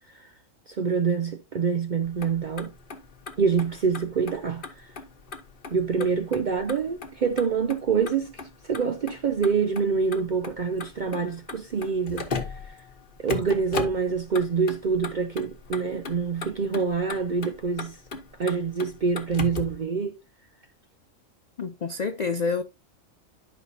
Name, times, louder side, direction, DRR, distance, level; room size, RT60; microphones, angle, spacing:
voice 1, 0.7-2.7 3.4-4.9 5.7-12.8 13.2-18.0 18.4-20.1, right 5 dB, 60° right, 0.5 m, -26 dB
Motor vehicle (road), 2.0-19.8, left 4 dB, 40° left, 1.2 m, -38 dB
voice 2, 21.6-22.6, left 4 dB, 65° left, 0.4 m, -28 dB
11.0 x 5.4 x 2.7 m
omnidirectional pair, 1.4 m